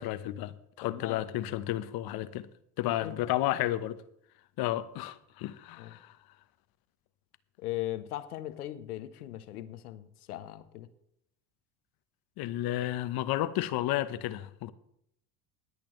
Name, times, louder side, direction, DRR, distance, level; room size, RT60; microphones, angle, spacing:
voice 1, 0.0-2.5 2.8-4.0 4.6-6.1 12.4-14.7, left 14 dB, 55° left, 1.0 m, -32 dB
voice 2, 0.8-1.2 2.9-3.2 5.8-5.9 7.6-10.9, left 14 dB, 85° left, 1.0 m, -39 dB
20.0 x 8.5 x 3.2 m
hypercardioid pair, 75°, 44 cm